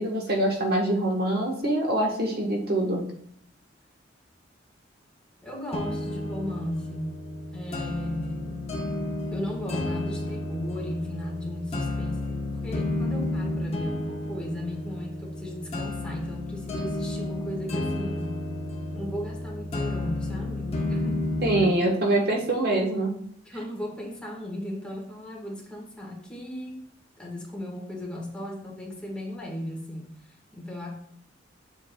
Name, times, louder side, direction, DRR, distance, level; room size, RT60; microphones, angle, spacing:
voice 1, 0.0-3.0 21.4-23.1, right 1 dB, 55° right, 0 dB, 1.2 m, -24 dB
voice 2, 5.4-7.2 7.5-8.7 9.3-18.3 18.9-21.3 21.6-21.8 22.2-22.4 23.4-26.8 27.2-30.9, left 1 dB, 5° left, -2 dB, 1.4 m, -36 dB
sound 1, 5.7-21.7, left 1 dB, 30° left, 0.9 m, -31 dB
8.5 x 7.2 x 2.2 m, 0.66 s
head